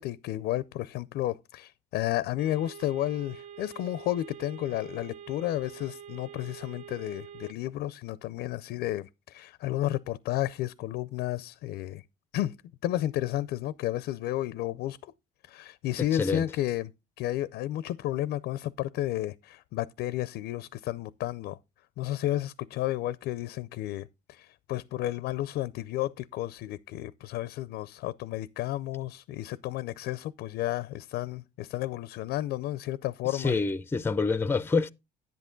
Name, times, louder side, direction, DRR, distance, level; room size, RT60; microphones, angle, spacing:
voice 1, 0.0-12.0 12.3-12.5 12.8-15.1 15.5-16.9 17.2-21.6 22.0-33.6, left 14 dB, 75° left, 0.5 m, -32 dB
sound 1, 2.4-7.5, right 9 dB, 45° right, 0.5 m, -46 dB
voice 2, 16.0-16.4 33.3-34.9, left 4 dB, 15° left, 0.5 m, -27 dB
10.5 x 8.4 x 3.8 m
cardioid pair, 110°, 17 cm